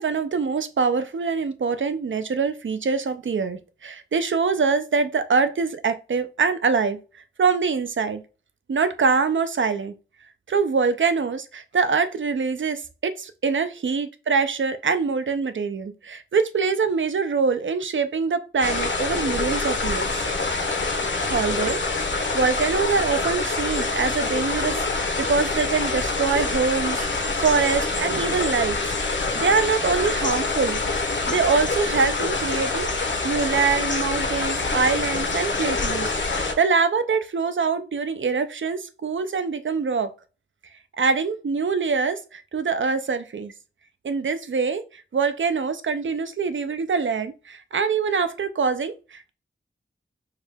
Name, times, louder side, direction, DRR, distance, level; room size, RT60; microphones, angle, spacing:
voice 1, 0.0-7.0 7.4-8.2 8.7-9.9 10.5-20.3 21.3-32.9 33.2-40.1 41.0-43.5 44.0-49.3, right 5 dB, 65° right, 0.5 m, -24 dB
sound 1, 18.6-36.5, left 3 dB, 60° left, 0.7 m, -26 dB
4.6 x 2.2 x 3.4 m
wide cardioid pair, 65°, 21 cm